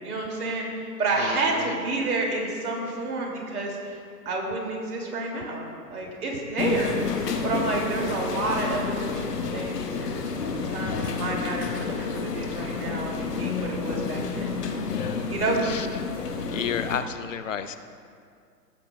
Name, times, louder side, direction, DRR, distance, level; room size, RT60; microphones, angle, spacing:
voice 1, 0.0-4.0 4.2-7.0 7.4-14.5 15.3-15.7, right 2 dB, 60° right, -1 dB, 2.7 m, -30 dB
voice 2, 1.2-1.7 10.1-11.1 15.6-16.0 16.5-17.8, left 8 dB, 50° left, 10 dB, 0.5 m, -33 dB
sound 1, 6.6-17.0, left 5 dB, 70° left, 1.3 m, -30 dB
17.5 x 8.1 x 2.3 m, 2.3 s
figure-of-eight pair, 130°, 50 cm